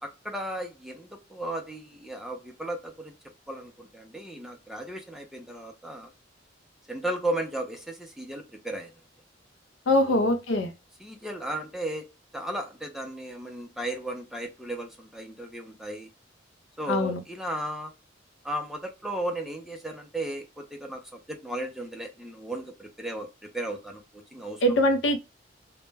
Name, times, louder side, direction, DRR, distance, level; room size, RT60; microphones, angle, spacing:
voice 1, 0.0-3.1 3.5-6.1 6.9-8.9 10.0-10.3 11.0-12.1 12.3-16.1 16.8-17.9 18.4-24.8, right 1 dB, ahead, 0.4 m, -35 dB
voice 2, 9.9-10.7 16.9-17.2 24.6-25.2, left 1 dB, 65° left, 0.5 m, -23 dB
2.1 x 2.1 x 3.2 m
head